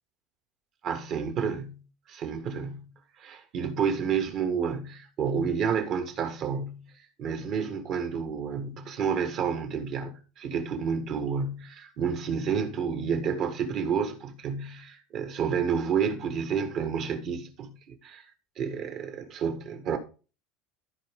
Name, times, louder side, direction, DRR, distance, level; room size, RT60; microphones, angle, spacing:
voice 1, 0.8-1.8 2.1-2.9 3.2-6.8 7.2-18.3 18.6-20.0, right 6 dB, 35° right, 1.8 m, -30 dB
14.5 x 4.8 x 3.7 m
cardioid pair, 175°, 0 cm